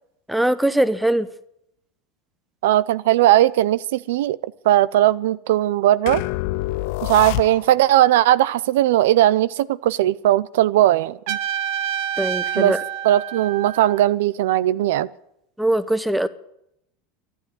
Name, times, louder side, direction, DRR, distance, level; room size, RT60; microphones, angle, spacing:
voice 1, 0.3-1.3 12.2-12.8 15.6-16.3, right 1 dB, 5° right, 14 dB, 0.8 m, -21 dB
voice 2, 2.6-6.2 7.0-11.4 12.6-12.7 13.0-15.1, right 13 dB, 80° right, 17 dB, 0.4 m, -18 dB
sound 1, 6.1-7.9, left 18 dB, 70° left, 0.4 m, -27 dB
Trumpet, 11.3-14.1, right 10 dB, 65° right, 0.9 m, -28 dB
12.0 x 10.0 x 8.9 m, 0.79 s
supercardioid pair, 110°, 0 cm